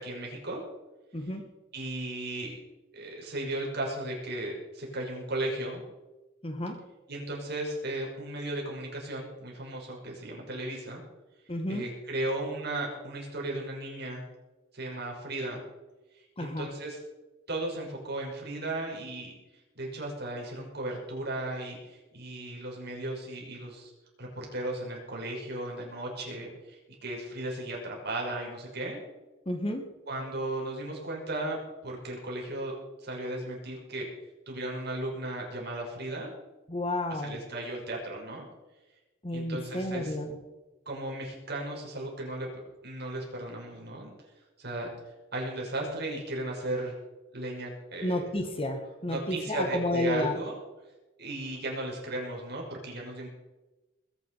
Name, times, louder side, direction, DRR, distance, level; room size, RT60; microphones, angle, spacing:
voice 1, 0.0-0.6 1.7-2.6 2.9-5.8 7.1-11.0 11.7-14.2 14.7-15.6 16.2-17.0 17.5-19.3 19.7-23.9 24.2-29.0 30.1-31.6 31.8-32.7 33.0-34.1 34.5-36.3 37.2-38.5 39.3-40.1 40.9-44.1 44.6-44.9 45.3-46.9 47.3-48.2 49.1-50.5 51.2-53.3, right 1 dB, 55° right, -2 dB, 6.2 m, -35 dB
voice 2, 1.1-1.4 6.4-6.8 11.5-11.9 16.4-16.7 29.4-29.9 36.7-37.4 39.2-40.4 48.0-50.4, left 1 dB, 30° left, 6 dB, 1.7 m, -31 dB
20.5 x 10.0 x 5.7 m, 1.1 s
head